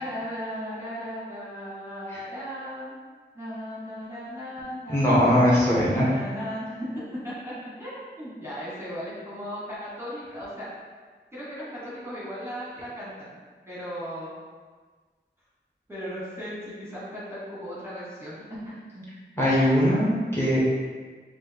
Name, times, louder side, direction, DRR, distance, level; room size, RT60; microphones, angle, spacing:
voice 1, 0.0-3.0 3.3-10.7 11.3-13.4 13.7-14.3 15.9-19.0, equal, 15° right, -9 dB, 1.1 m, -36 dB
voice 2, 4.9-6.1 19.4-20.6, equal, 15° left, -7 dB, 1.3 m, -21 dB
4.5 x 2.4 x 3.4 m, 1.4 s
wide cardioid pair, 45°, 19 cm